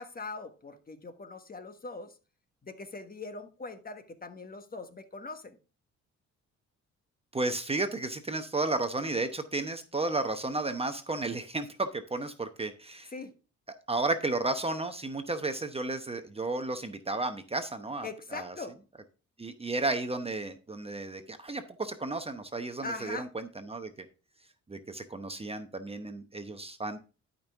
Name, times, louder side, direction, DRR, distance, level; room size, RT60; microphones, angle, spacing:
voice 1, 0.0-2.1 2.6-5.6 13.1-13.3 18.0-18.8 22.8-23.3, left 3 dB, 30° left, 1.4 m, -41 dB
voice 2, 7.3-13.1 13.9-18.5 19.4-24.1 24.7-27.0, right 2 dB, 20° right, 0.9 m, -33 dB
12.0 x 5.4 x 3.5 m
cardioid pair, 90°, 30 cm